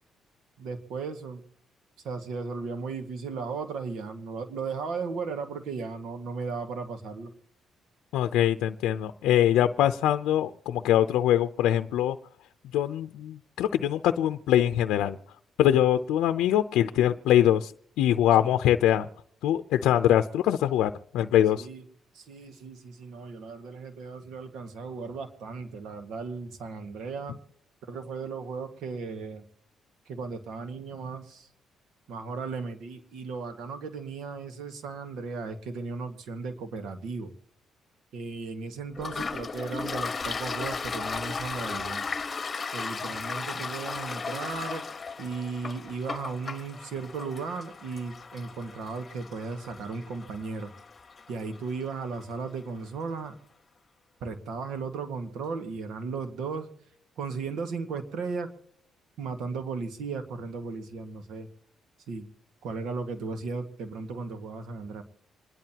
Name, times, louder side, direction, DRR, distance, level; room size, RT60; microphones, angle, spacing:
voice 1, 0.6-1.4 2.0-7.3 18.4-18.6 21.5-21.9 22.1-27.3 27.8-29.4 30.0-31.5 32.1-37.3 38.1-42.1 42.7-44.8 45.2-50.7 51.3-53.4 54.2-56.7 57.2-58.5 59.2-61.5 62.1-62.3 62.6-65.0, right 4 dB, 80° right, 7 dB, 1.8 m, -36 dB
voice 2, 8.1-12.2 12.7-15.2 15.6-17.7 18.0-19.1 19.4-21.7, left 11 dB, 90° left, 9 dB, 0.6 m, -23 dB
Toilet flush, 39.0-52.3, left 4 dB, 35° left, 1.2 m, -36 dB
27.5 x 11.0 x 2.9 m, 0.70 s
cardioid pair, 90°, 0 cm